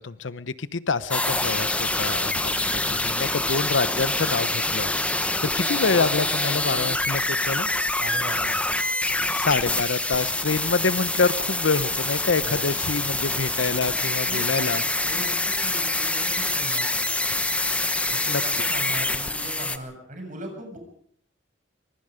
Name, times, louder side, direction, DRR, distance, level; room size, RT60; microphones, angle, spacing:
voice 1, 0.0-4.9 5.6-7.7 9.3-14.8 18.3-18.4, left 4 dB, 75° left, 15 dB, 0.9 m, -26 dB
sound 1, 1.1-19.8, left 2 dB, 5° left, 1.1 m, -26 dB
voice 2, 8.0-8.6 12.4-12.6 14.2-14.7 15.0-16.8 18.1-20.8, right 1 dB, 45° right, 3 dB, 7.0 m, -38 dB
24.5 x 21.5 x 5.1 m, 0.63 s
head